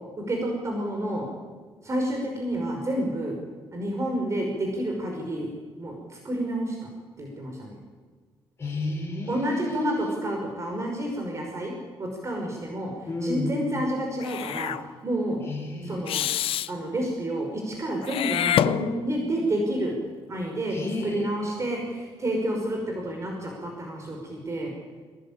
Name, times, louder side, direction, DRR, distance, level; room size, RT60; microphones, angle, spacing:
voice 1, 0.3-1.3 1.8-3.4 3.7-5.5 5.8-6.9 7.2-7.8 9.3-11.7 12.0-12.9 13.2-14.7 15.0-15.4 15.8-16.3 16.7-19.9 20.3-20.8 21.0-24.7, right 1 dB, 30° right, 1 dB, 5.6 m, -29 dB
voice 2, 8.6-10.1 13.1-13.6 15.5-16.0 20.7-21.3, left 2 dB, 25° left, 0 dB, 5.2 m, -31 dB
Meow / Hiss, 14.2-14.8 16.1-16.7 18.0-19.3, left 11 dB, 75° left, 0.8 m, -26 dB
23.0 x 19.0 x 8.9 m, 1.4 s
cardioid pair, 130°, 9 cm